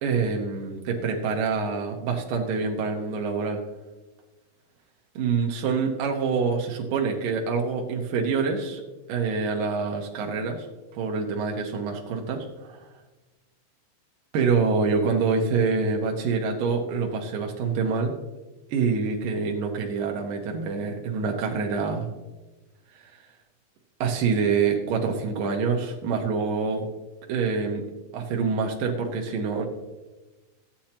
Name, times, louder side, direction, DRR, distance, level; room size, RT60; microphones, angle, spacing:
voice 1, 0.0-3.6 5.2-8.8 9.1-10.7 10.9-12.9 14.3-18.2 18.7-22.1 22.9-23.2 24.0-26.9 27.3-27.8 28.1-29.7, right 5 dB, 90° right, 1 dB, 1.9 m, -26 dB
14.5 x 9.8 x 2.9 m, 1.2 s
omnidirectional pair, 5.4 m